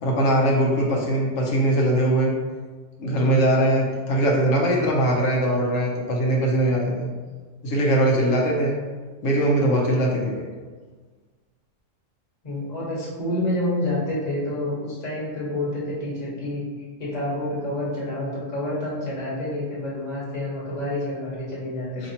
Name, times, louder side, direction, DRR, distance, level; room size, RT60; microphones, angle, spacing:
voice 1, 0.0-2.3 3.0-7.1 7.6-8.8 9.2-10.4 22.0-22.1, right 1 dB, 85° left, -2 dB, 1.1 m, -21 dB
voice 2, 12.4-16.6 17.0-22.1, left 1 dB, 35° left, -7 dB, 1.2 m, -28 dB
4.1 x 2.9 x 2.7 m, 1.4 s
omnidirectional pair, 1.3 m